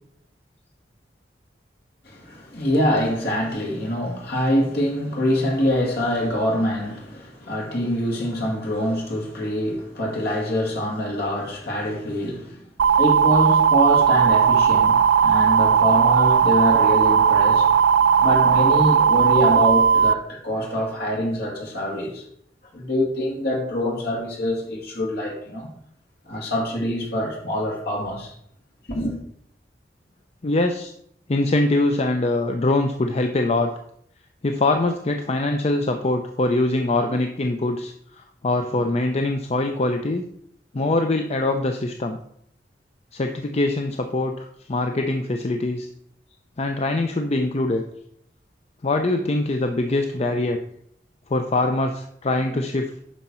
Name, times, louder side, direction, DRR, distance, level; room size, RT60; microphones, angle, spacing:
voice 1, 2.0-12.7 13.0-17.7 18.2-22.2 22.7-25.7 26.3-28.3 28.9-29.2, left 1 dB, 65° left, 2.4 m, -25 dB
sound 1, 12.8-20.1, right 7 dB, 65° right, 0.3 m, -17 dB
voice 2, 30.4-30.9 31.3-33.7 34.4-40.2 40.7-42.2 43.1-45.9 46.6-47.8 48.8-50.6 51.3-52.9, left 2 dB, 35° left, 0.5 m, -23 dB
9.4 x 5.8 x 4.4 m
head